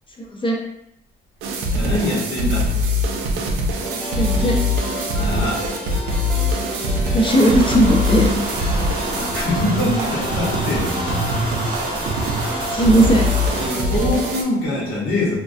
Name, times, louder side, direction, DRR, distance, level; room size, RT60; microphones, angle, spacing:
voice 1, 0.2-0.6 4.2-4.6 7.1-8.3 12.5-13.2, right 1 dB, 25° left, -1 dB, 0.6 m, -17 dB
sound 1, 1.4-14.4, left 1 dB, 85° right, 0.4 m, -23 dB
voice 2, 1.7-2.7 5.1-5.6 9.1-11.3 13.6-15.4, left 1 dB, 80° left, -4 dB, 0.9 m, -24 dB
sound 2, 3.8-14.4, equal, 5° left, 1.1 m, -31 dB
sound 3, 7.3-13.7, right 1 dB, 25° right, 0.6 m, -29 dB
2.3 x 2.1 x 2.5 m, 0.79 s
cardioid pair, 90°, 20 cm